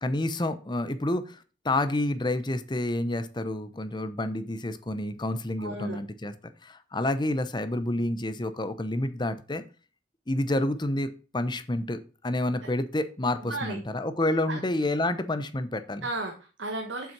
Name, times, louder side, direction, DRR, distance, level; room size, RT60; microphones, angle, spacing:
voice 1, 0.0-6.3 6.6-9.6 10.3-16.1, left 1 dB, 25° left, 11 dB, 0.8 m, -29 dB
voice 2, 5.6-6.0 13.5-13.8 14.5-14.6 16.0-17.1, right 2 dB, 70° right, 3 dB, 1.4 m, -34 dB
7.5 x 5.8 x 5.9 m, 0.35 s
head